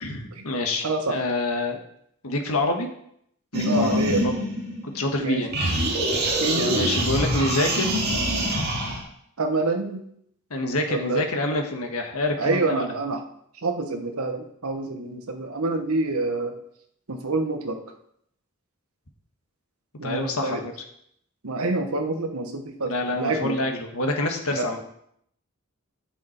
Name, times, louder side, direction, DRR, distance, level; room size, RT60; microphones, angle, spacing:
voice 1, 0.0-1.8 2.2-2.9 3.5-4.3 4.8-5.5 6.7-8.1 10.5-12.9 20.0-20.6 22.8-24.8, left 2 dB, 90° left, 4 dB, 1.5 m, -27 dB
voice 2, 0.8-1.2 3.6-4.2 5.2-5.4 6.4-6.9 9.4-10.0 10.9-11.3 12.4-13.2 13.6-16.6 17.1-17.8 20.0-20.6 21.4-23.6 24.5-24.7, right 2 dB, 85° right, 5 dB, 1.2 m, -27 dB
sound 1, 3.5-5.2 5.5-9.0, right 1 dB, 50° right, 2.3 m, -25 dB
9.3 x 7.2 x 4.5 m, 0.72 s
head